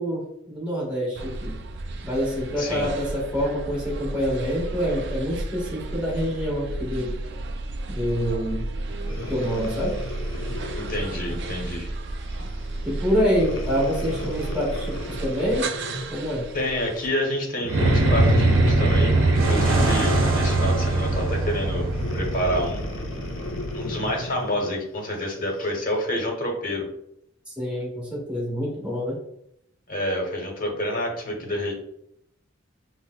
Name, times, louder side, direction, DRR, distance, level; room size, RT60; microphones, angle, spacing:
voice 1, 0.0-1.5 2.0-7.2 7.9-8.6 9.3-9.9 12.8-15.0 15.2-15.7 16.1-16.4 27.6-29.2, equal, 5° right, -7 dB, 1.4 m, -26 dB
sound 1, 1.2-17.1, right 2 dB, 60° right, 0.4 m, -33 dB
voice 2, 2.6-2.9 10.7-11.9 16.5-22.8 23.7-26.8 29.9-31.7, left 1 dB, 45° left, 1 dB, 0.9 m, -28 dB
Breathing, 9.0-11.7 12.3-12.5 13.4-16.2 17.7-20.5 21.9-24.7 25.3-25.4, left 2 dB, 70° left, 0.5 m, -35 dB
sound 2, 17.6-24.3, right 2 dB, 75° right, 0.8 m, -22 dB
5.5 x 2.1 x 2.2 m, 0.75 s
head